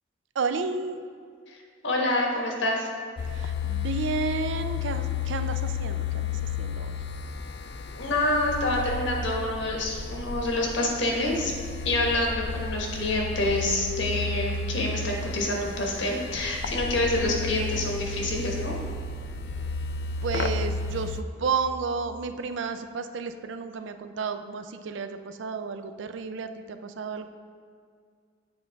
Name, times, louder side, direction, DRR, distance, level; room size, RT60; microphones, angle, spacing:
voice 1, 0.4-1.0 3.3-6.3 6.6-6.9 20.2-27.3, right 5 dB, 75° right, 9 dB, 0.4 m, -32 dB
voice 2, 1.8-2.9 7.9-11.5 11.8-18.8, left 1 dB, 80° left, 0 dB, 1.2 m, -27 dB
sound 1, 3.2-21.2, left 5 dB, 60° left, 0.3 m, -32 dB
7.9 x 5.2 x 3.4 m, 2.1 s
head